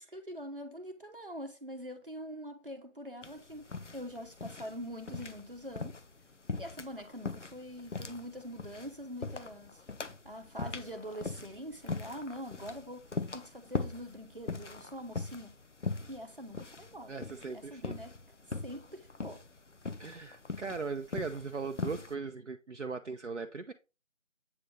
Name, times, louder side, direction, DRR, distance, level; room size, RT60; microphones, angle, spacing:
voice 1, 0.0-6.0 6.6-9.9 10.2-15.6 16.0-17.2 17.5-19.4, equal, 40° right, 0.9 m, -44 dB
sound 1, 3.2-22.1, left 3 dB, 60° left, 0.7 m, -41 dB
voice 2, 17.1-17.9 20.0-23.7, right 4 dB, 60° right, 0.5 m, -39 dB
8.1 x 3.9 x 3.2 m
figure-of-eight pair, 175°, 40 cm